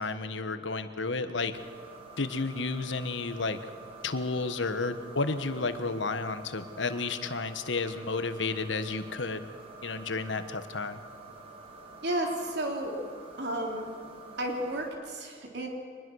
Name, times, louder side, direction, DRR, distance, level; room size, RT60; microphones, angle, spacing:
voice 1, 0.0-1.6 2.2-3.6 4.0-9.5 9.8-11.0, left 3 dB, 75° left, 10 dB, 1.4 m, -32 dB
sound 1, 1.5-14.9, right 3 dB, 30° right, 3.9 m, -48 dB
voice 2, 12.0-12.9 13.4-13.9 14.4-15.7, right 1 dB, 60° right, 1 dB, 3.6 m, -32 dB
23.5 x 20.5 x 6.4 m, 2.3 s
head